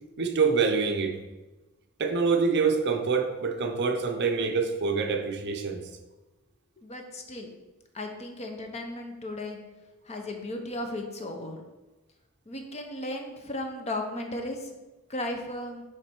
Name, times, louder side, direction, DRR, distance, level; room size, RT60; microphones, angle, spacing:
voice 1, 0.2-1.2 2.0-5.8, right 5 dB, 50° right, 5 dB, 0.6 m, -26 dB
voice 2, 6.8-7.5 7.9-9.6 10.1-11.6 12.5-14.7 15.1-15.8, left 1 dB, 30° left, 4 dB, 0.7 m, -35 dB
7.5 x 3.3 x 4.4 m, 1.1 s
head